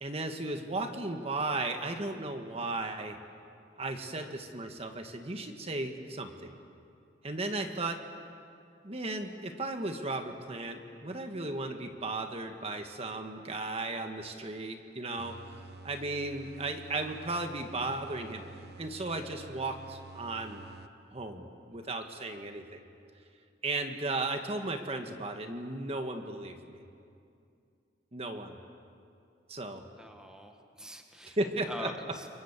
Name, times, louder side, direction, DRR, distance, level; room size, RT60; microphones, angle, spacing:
voice 1, 0.0-3.2 3.8-6.6 7.2-8.0 8.8-15.4 15.8-18.4 18.8-20.6 21.1-22.8 23.6-26.8 28.1-28.6 29.5-29.8 31.4-31.9, right 2 dB, 35° right, 5 dB, 1.7 m, -35 dB
sound 1, 15.2-21.3, right 4 dB, 65° right, 0.8 m, -50 dB
voice 2, 30.0-31.4 31.7-32.3, equal, 5° right, 4 dB, 1.5 m, -44 dB
29.5 x 23.5 x 7.4 m, 2.5 s
head